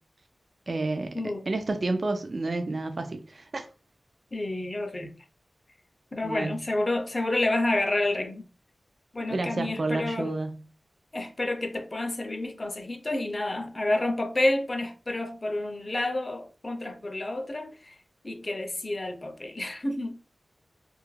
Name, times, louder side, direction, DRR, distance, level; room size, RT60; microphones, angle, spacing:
voice 1, 0.7-1.2 1.5-3.7 6.2-6.6 9.3-10.6, right 2 dB, 50° right, 0.3 m, -30 dB
voice 2, 4.3-5.1 6.1-8.5 9.1-10.3 11.1-18.0 18.2-20.2, left 2 dB, 30° left, 0.4 m, -29 dB
2.3 x 2.1 x 3.0 m
wide cardioid pair, 80°, 0 cm